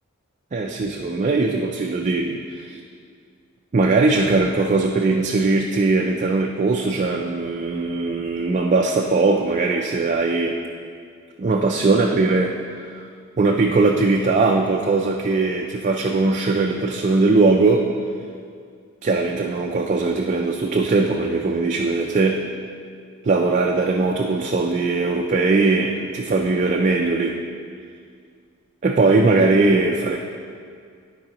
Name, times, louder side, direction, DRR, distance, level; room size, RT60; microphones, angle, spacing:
voice 1, 0.5-2.8 3.7-10.6 11.4-13.0 13.4-17.8 19.0-22.4 23.3-27.4 28.8-30.2, right 3 dB, 35° right, 1 dB, 0.4 m, -20 dB
12.5 x 4.8 x 2.9 m, 2.2 s
head